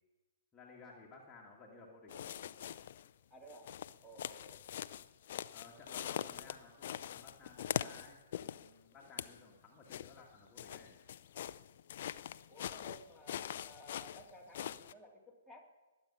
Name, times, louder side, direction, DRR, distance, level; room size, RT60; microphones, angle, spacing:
voice 1, 0.5-2.5 5.5-11.0, left 3 dB, 15° left, -3 dB, 2.0 m, -57 dB
sound 1, 2.1-3.1 3.5-8.7 9.0-9.4 9.9-14.9, left 10 dB, 50° left, 0.5 m, -43 dB
voice 2, 3.3-3.7 4.0-4.6 12.5-15.6, right 1 dB, 5° right, 1 dB, 2.6 m, -56 dB
20.5 x 8.7 x 5.6 m, 1.2 s
figure-of-eight pair, 125°, 0 cm